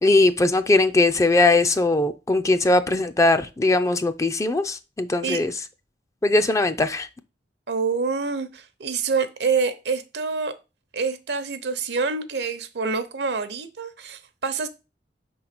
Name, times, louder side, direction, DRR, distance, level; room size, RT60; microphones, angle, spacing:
voice 1, 0.0-5.5 6.2-7.1, left 2 dB, 20° left, 0.4 m, -20 dB
voice 2, 7.7-10.5 10.9-14.7, right 4 dB, 70° right, 0.8 m, -26 dB
5.4 x 3.9 x 5.9 m
head